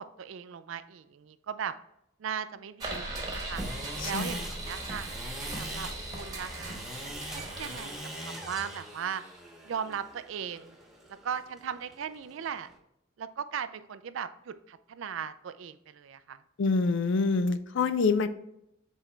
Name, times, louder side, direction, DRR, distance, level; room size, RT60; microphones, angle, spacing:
voice 1, 0.0-1.7 2.2-3.6 4.0-5.2 5.6-6.8 7.3-9.2 9.7-10.7 11.2-12.7 13.2-16.4, right 7 dB, 70° right, 13 dB, 0.4 m, -38 dB
sound 1, 2.8-9.4, right 2 dB, 20° right, 1.2 m, -39 dB
sound 2, 3.5-12.8, right 1 dB, ahead, 1.0 m, -42 dB
voice 2, 4.0-4.3 16.6-18.3, left 4 dB, 65° left, 12 dB, 0.4 m, -26 dB
7.0 x 4.2 x 3.3 m, 0.79 s
head